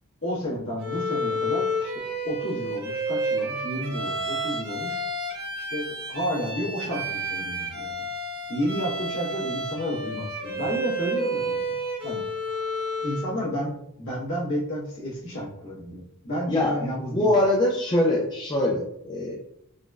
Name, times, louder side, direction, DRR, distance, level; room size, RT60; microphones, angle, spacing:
voice 1, 0.2-5.0 5.5-8.1 8.5-11.6 12.0-12.2 13.0-17.4, equal, 60° left, -6 dB, 1.2 m, -31 dB
Bowed string instrument, 0.8-13.3, right 1 dB, 45° right, 0.6 m, -30 dB
voice 2, 16.5-19.3, left 1 dB, 20° left, -3 dB, 0.3 m, -23 dB
3.8 x 2.1 x 2.3 m, 0.75 s
head